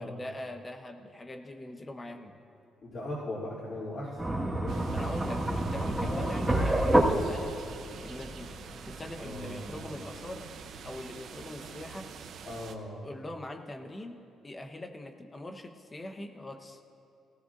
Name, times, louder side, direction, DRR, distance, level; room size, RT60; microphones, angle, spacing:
voice 1, 0.0-2.4 4.9-7.5 8.0-8.5 8.9-10.5 10.8-12.1 13.0-14.2 14.4-16.8, left 1 dB, 25° left, 5 dB, 1.2 m, -42 dB
voice 2, 2.8-4.8 5.9-6.3 9.2-9.9 12.4-13.0, left 1 dB, 55° left, -11 dB, 3.1 m, -39 dB
sound 1, 4.2-9.8, right 1 dB, 5° right, 1.9 m, -29 dB
sound 2, 4.7-12.7, right 6 dB, 70° right, 0.8 m, -46 dB
18.0 x 16.5 x 2.7 m, 2.7 s
cardioid pair, 90°, 0 cm